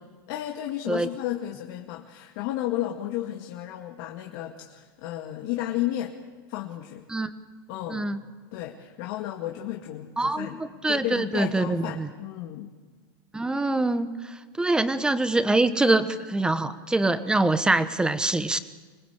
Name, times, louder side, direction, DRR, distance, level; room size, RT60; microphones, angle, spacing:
voice 1, 0.3-6.2 6.5-7.0 7.7-8.1 8.5-12.7, left 13 dB, 55° left, 1 dB, 2.1 m, -33 dB
voice 2, 7.9-8.2 10.2-12.1 13.3-18.6, right 2 dB, 5° right, 12 dB, 1.2 m, -24 dB
25.5 x 19.5 x 8.3 m, 1.4 s
supercardioid pair, 135°, 12 cm